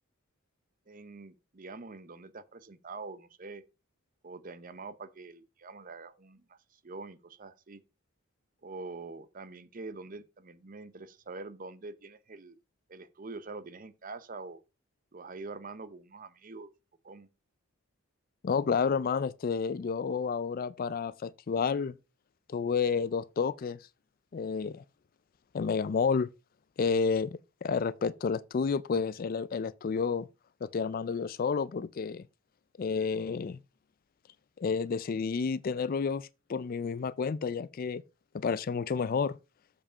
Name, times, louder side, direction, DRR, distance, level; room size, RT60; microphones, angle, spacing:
voice 1, 0.9-3.6 4.2-7.8 8.6-12.6 12.9-14.6 15.1-16.7 17.0-17.3, right 3 dB, 40° right, 0.7 m, -45 dB
voice 2, 18.4-22.0 22.5-23.8 24.3-24.8 25.5-26.3 26.8-30.3 30.6-32.2 32.8-33.6 34.6-38.0 38.3-39.4, left 5 dB, 40° left, 0.3 m, -30 dB
7.4 x 5.0 x 5.5 m
head